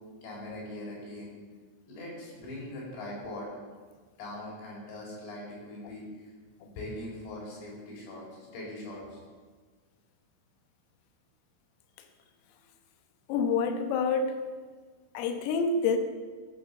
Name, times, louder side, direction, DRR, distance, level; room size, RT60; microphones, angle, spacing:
voice 1, 0.2-1.3 1.9-3.5 4.2-6.1 6.6-9.2, left 1 dB, 60° left, -4 dB, 6.5 m, -41 dB
voice 2, 13.3-14.4 15.2-16.0, left 5 dB, 85° left, 6 dB, 3.8 m, -27 dB
15.5 x 9.3 x 6.9 m, 1.5 s
omnidirectional pair, 5.8 m